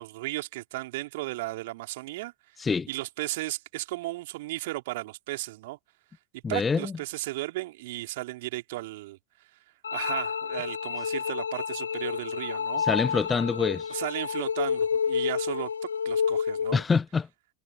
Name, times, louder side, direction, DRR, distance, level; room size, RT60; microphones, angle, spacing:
voice 1, 0.0-2.3 2.9-5.8 6.5-9.2 9.9-12.9 13.9-15.7 16.0-16.8, right 19 dB, 50° right, 3.4 m, -35 dB
voice 2, 6.4-6.9 12.8-14.0 16.7-17.3, left 5 dB, 15° left, 0.9 m, -26 dB
sound 1, 9.8-16.8, left 6 dB, 70° left, 0.4 m, -29 dB
figure-of-eight pair, 90°, 0 cm